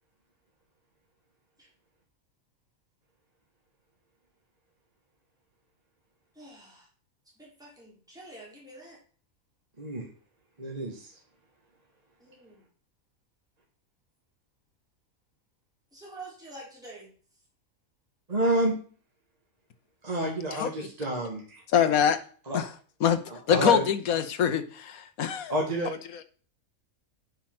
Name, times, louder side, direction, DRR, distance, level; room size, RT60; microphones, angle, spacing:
voice 1, 6.3-6.9 7.4-9.0 12.2-12.6 15.9-17.1, right 2 dB, 5° right, 3.7 m, -47 dB
voice 2, 9.8-10.1 10.6-11.1 18.3-18.7 20.0-21.6 22.5-22.6 23.5-23.8 25.5-26.0, right 1 dB, 30° right, 1.8 m, -29 dB
voice 3, 20.5-20.9 21.7-22.2 22.5-22.7 23.0-23.2 23.5-25.5 25.8-26.2, left 8 dB, 80° left, 1.4 m, -25 dB
9.8 x 5.5 x 5.9 m
omnidirectional pair, 1.5 m